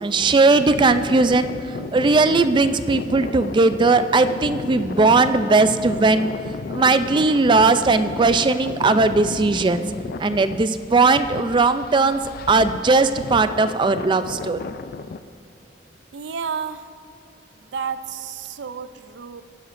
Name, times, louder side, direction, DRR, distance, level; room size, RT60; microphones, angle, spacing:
voice 1, 0.0-6.3 6.7-9.8 10.2-12.2 12.5-14.6, right 3 dB, 25° right, 11 dB, 0.4 m, -18 dB
sound 1, 0.5-15.2, left 4 dB, 55° left, 0.4 m, -33 dB
voice 2, 16.1-16.9 17.6-19.4, right 6 dB, 90° right, 12 dB, 0.5 m, -31 dB
18.5 x 10.0 x 2.6 m, 2.6 s
head